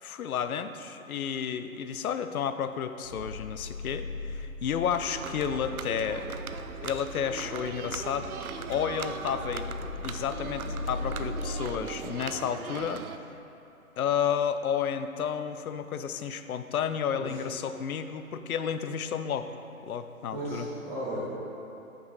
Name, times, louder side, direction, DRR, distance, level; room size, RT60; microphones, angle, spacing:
voice 1, 0.0-6.4 6.8-8.3 8.7-9.7 10.0-13.0 14.0-19.5 19.8-20.7, left 8 dB, 75° left, 10 dB, 0.5 m, -31 dB
sound 1, 3.0-11.6, left 2 dB, 60° left, 1.2 m, -39 dB
sound 2, 4.9-13.2, right 7 dB, 85° right, 0.5 m, -39 dB
voice 2, 20.3-21.4, right 1 dB, 5° right, -9 dB, 0.7 m, -35 dB
5.7 x 5.3 x 4.0 m, 2.8 s
hypercardioid pair, 145°, 43 cm